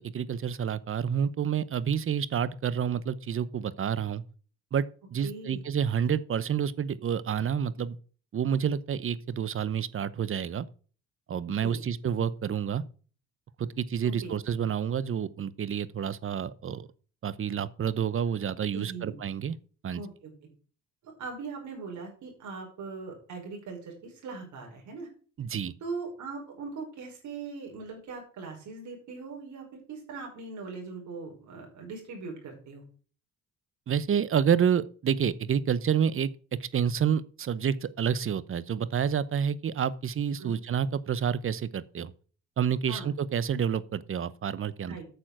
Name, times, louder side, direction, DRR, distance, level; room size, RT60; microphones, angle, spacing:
voice 1, 0.1-4.2 4.7-8.0 8.3-10.7 11.3-12.8 13.6-16.9 17.2-19.6 19.8-20.0 25.4-25.7 33.9-36.3 36.6-42.1 42.6-45.0, right 8 dB, 45° right, 0.8 m, -29 dB
voice 2, 5.2-5.6 11.6-11.8 14.0-14.3 18.7-19.2 19.9-20.3 21.0-25.1 25.8-32.8 40.4-40.6 42.9-43.1 44.9-45.0, right 4 dB, 75° right, 5.3 m, -40 dB
9.1 x 7.0 x 6.2 m
cardioid pair, 90°, 30 cm